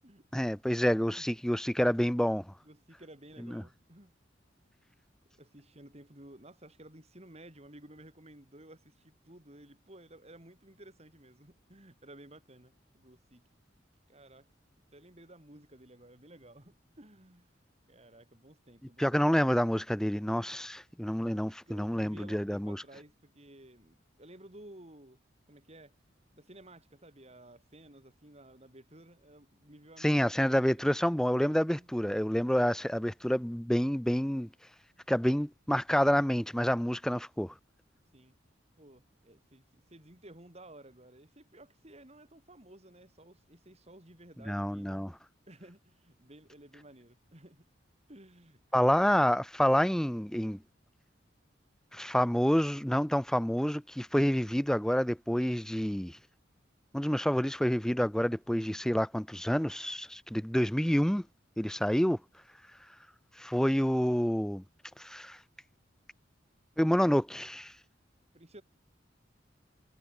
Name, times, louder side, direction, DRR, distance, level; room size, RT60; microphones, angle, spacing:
voice 1, 0.3-2.5 3.4-3.6 19.0-22.8 30.0-34.5 35.1-37.5 44.5-45.1 48.7-50.6 51.9-56.2 56.9-61.2 61.6-62.2 63.4-64.6 65.0-65.4 66.8-67.7, equal, 5° left, 0.6 m, -28 dB
voice 2, 2.6-4.1 5.4-13.5 14.1-14.5 14.9-17.5 17.9-19.3 21.5-25.2 25.5-25.9 26.3-30.8 31.7-31.9 38.1-38.3 38.8-45.1 45.5-47.7 48.1-49.0 68.3-68.6, right 1 dB, 35° right, 7.8 m, -54 dB
head